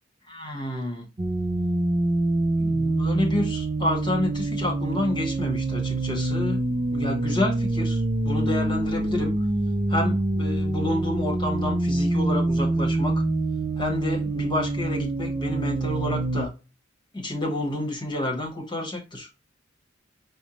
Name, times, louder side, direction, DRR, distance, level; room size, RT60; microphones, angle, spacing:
voice 1, 0.3-1.1 2.6-6.6 6.9-9.4 9.9-13.2 13.8-16.5 17.1-19.3, left 1 dB, 25° left, 1.1 m, -29 dB
sound 1, 1.2-16.5, right 2 dB, 30° right, 0.4 m, -25 dB
5.2 x 2.1 x 2.9 m
head